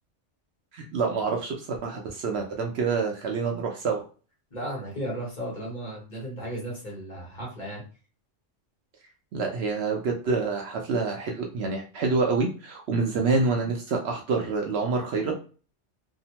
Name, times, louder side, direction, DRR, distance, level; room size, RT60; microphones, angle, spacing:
voice 1, 0.7-4.0 9.3-15.3, right 4 dB, 65° right, 2 dB, 0.7 m, -27 dB
voice 2, 4.5-7.8, right 1 dB, 40° left, -4 dB, 1.2 m, -35 dB
2.8 x 2.1 x 2.8 m, 0.37 s
omnidirectional pair, 1.2 m